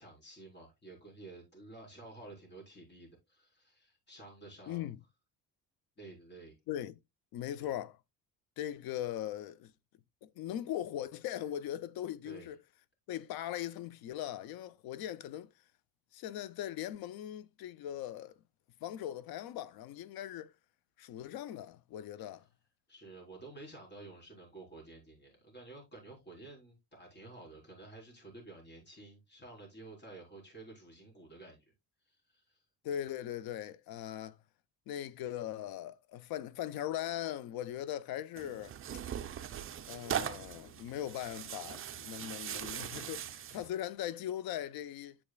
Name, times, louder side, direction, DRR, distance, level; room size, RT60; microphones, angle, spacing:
voice 1, 0.0-4.9 6.0-6.6 7.6-7.7 12.2-12.5 22.9-31.7 32.0-32.6, right 2 dB, 30° left, 4.3 m, -52 dB
voice 2, 4.7-5.0 6.7-7.0 7.3-8.0 8.6-9.7 10.2-12.6 13.1-15.5 16.1-18.3 18.8-20.5 21.0-22.4 32.8-34.4 34.9-38.8 39.9-45.2, left 11 dB, 75° left, 0.7 m, -40 dB
Tearing, 38.4-43.7, right 9 dB, 35° right, 0.6 m, -40 dB
8.7 x 7.0 x 2.3 m
cardioid pair, 145°, 36 cm